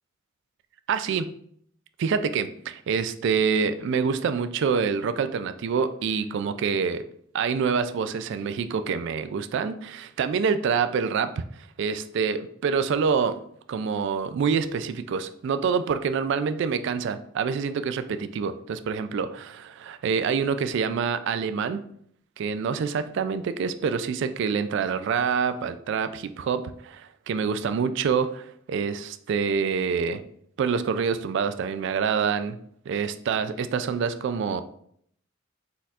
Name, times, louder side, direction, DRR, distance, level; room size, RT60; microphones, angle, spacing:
voice 1, 0.9-1.4 2.0-7.0 7.3-13.4 13.7-21.8 22.4-30.2 30.6-32.6 32.9-34.6, right 6 dB, 65° right, 11 dB, 0.3 m, -26 dB
4.2 x 4.1 x 2.4 m, 0.65 s
head